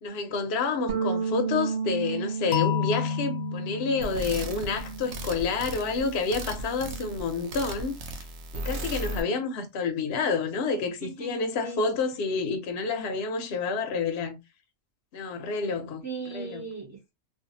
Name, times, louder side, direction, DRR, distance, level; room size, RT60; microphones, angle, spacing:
voice 1, 0.0-8.2 8.5-14.4 15.1-16.0 16.3-16.6, left 4 dB, 65° left, 0.7 m, -29 dB
sound 1, 0.9-5.4 5.7-7.1, right 5 dB, 60° right, 0.7 m, -33 dB
sound 2, 2.5-5.4, left 11 dB, 85° left, 1.0 m, -31 dB
sound 3, 4.0-9.2, right 1 dB, 85° right, 1.0 m, -36 dB
voice 2, 10.8-11.9 16.0-17.1, right 4 dB, 25° right, 0.4 m, -39 dB
2.5 x 2.3 x 2.6 m
omnidirectional pair, 1.3 m